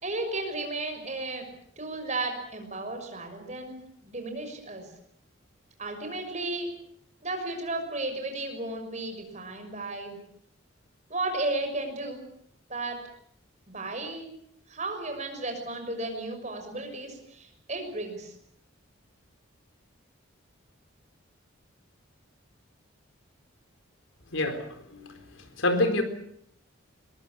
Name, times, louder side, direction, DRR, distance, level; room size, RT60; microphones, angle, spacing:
voice 1, 0.0-1.4 1.8-4.9 5.8-6.7 7.2-10.2 11.1-12.2 12.7-13.0 13.7-14.3 14.7-18.3, right 2 dB, 35° right, 4 dB, 6.2 m, -34 dB
voice 2, 24.9-25.2 25.6-26.0, left 1 dB, 75° left, 7 dB, 4.1 m, -26 dB
23.0 x 21.5 x 8.6 m, 0.69 s
head